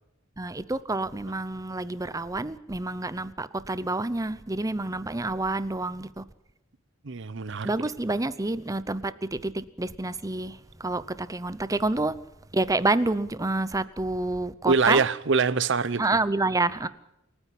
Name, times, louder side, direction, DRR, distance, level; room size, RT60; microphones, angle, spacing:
voice 1, 0.4-6.2 7.6-12.2 12.5-15.0 16.0-16.9, right 2 dB, 15° right, 0.7 m, -28 dB
voice 2, 7.0-7.7 14.7-16.0, right 4 dB, 65° right, 0.8 m, -24 dB
27.5 x 9.9 x 10.0 m
head